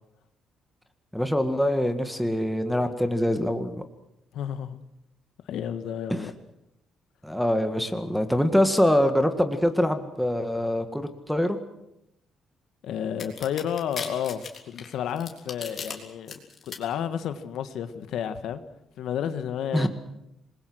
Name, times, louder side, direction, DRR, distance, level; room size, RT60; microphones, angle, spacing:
voice 1, 1.1-3.8 6.1-6.2 7.2-11.6 19.7-19.9, equal, ahead, 1.8 m, -24 dB
voice 2, 4.3-4.8 5.5-6.3 12.8-18.6 19.0-19.9, left 9 dB, 70° left, 1.5 m, -31 dB
sound 1, 13.2-15.9 16.3-16.8, left 6 dB, 40° left, 3.7 m, -36 dB
27.0 x 21.5 x 6.3 m
cardioid pair, 145°, 0 cm